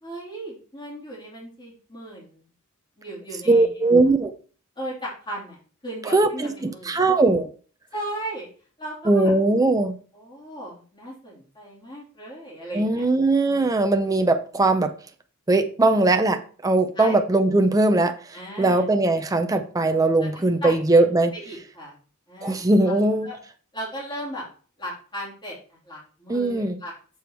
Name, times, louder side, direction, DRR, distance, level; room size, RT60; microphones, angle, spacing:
voice 1, 0.0-2.5 3.0-3.9 4.8-5.6 5.8-7.1 7.9-8.5 8.8-9.3 10.1-13.0 13.5-13.7 16.9-17.2 18.3-18.9 20.2-20.3 20.6-21.0 21.3-22.0 22.3-23.0 23.2-23.4 23.7-24.5 24.8-26.9, equal, 20° left, -5 dB, 2.9 m, -36 dB
voice 2, 3.5-4.3 6.1-7.5 9.1-10.0 12.7-14.9 15.5-21.3 22.4-23.3 26.3-26.8, right 2 dB, 15° right, 6 dB, 0.5 m, -20 dB
7.0 x 4.6 x 4.5 m, 0.40 s
head